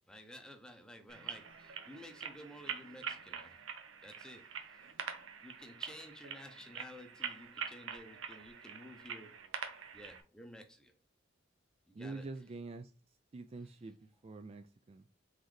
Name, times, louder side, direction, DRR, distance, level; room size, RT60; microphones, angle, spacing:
voice 1, 0.1-3.6 4.0-4.8 5.4-9.4 9.9-10.9 11.9-12.3, left 1 dB, 5° left, 0.6 m, -53 dB
sound 1, 1.1-10.2, right 7 dB, 85° right, 0.8 m, -45 dB
voice 2, 11.9-12.9 13.3-13.9 14.2-15.0, right 3 dB, 30° right, 0.3 m, -45 dB
4.0 x 3.9 x 3.2 m
head